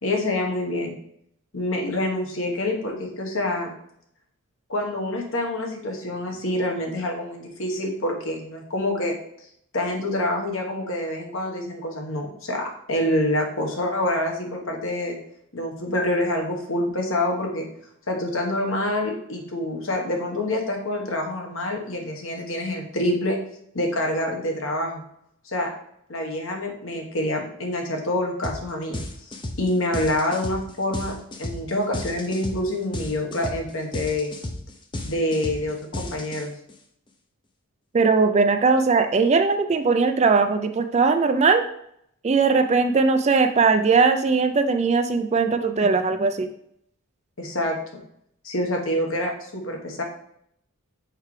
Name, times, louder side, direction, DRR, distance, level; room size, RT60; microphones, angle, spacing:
voice 1, 0.0-0.9 1.5-3.7 4.7-9.2 9.7-15.2 15.5-17.7 18.1-23.4 23.7-25.0 25.4-25.7 26.1-29.0 29.3-34.3 35.0-36.5 47.4-48.0 48.4-50.0, left 1 dB, 60° left, 1 dB, 1.3 m, -26 dB
sound 1, 28.4-28.6 28.9-36.7, left 1 dB, 20° left, 0.6 m, -33 dB
voice 2, 37.9-41.6 42.2-46.5, right 4 dB, 30° right, 8 dB, 0.4 m, -19 dB
6.6 x 4.7 x 3.2 m, 0.72 s
head